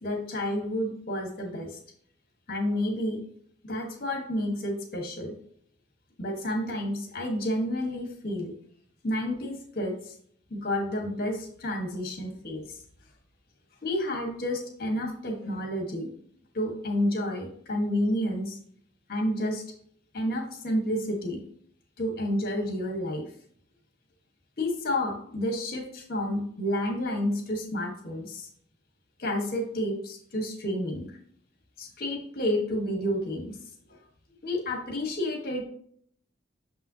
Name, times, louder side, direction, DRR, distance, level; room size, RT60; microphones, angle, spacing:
voice 1, 0.0-1.8 2.5-3.2 3.6-5.3 6.2-8.5 9.0-10.1 10.5-12.8 13.8-16.1 16.5-18.6 19.1-19.6 20.1-21.4 22.0-23.2 24.6-28.5 29.2-31.2 31.8-33.6 33.9-34.0 34.4-35.6, left 1 dB, 55° left, 2 dB, 1.5 m, -30 dB
6.7 x 5.4 x 2.8 m, 0.64 s
head